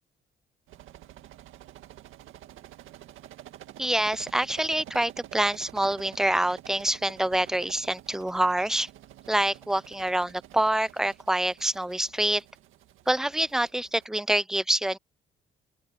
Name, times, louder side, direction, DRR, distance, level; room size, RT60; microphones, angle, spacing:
sound 1, 0.7-14.1, right 13 dB, 90° right, 2.0 m, -49 dB
voice 1, 3.8-8.9 9.3-12.4 13.1-15.0, right 1 dB, ahead, 0.4 m, -26 dB
open air
cardioid pair, 90°, 20 cm